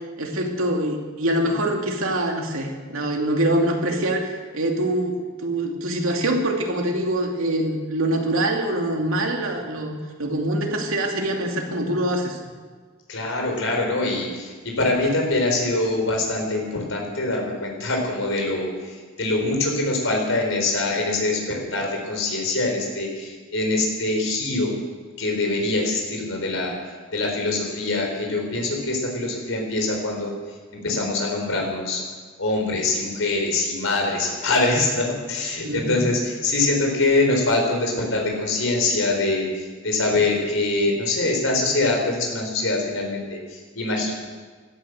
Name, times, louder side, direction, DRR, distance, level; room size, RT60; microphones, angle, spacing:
voice 1, 0.2-5.2 5.4-12.4 35.6-36.1, right 1 dB, 90° right, 1 dB, 2.7 m, -24 dB
voice 2, 13.1-18.7 19.2-24.7 25.2-26.7 27.1-30.3 30.7-32.0 32.4-44.1, left 2 dB, 75° left, 1 dB, 4.4 m, -24 dB
16.5 x 12.5 x 6.6 m, 1.5 s
head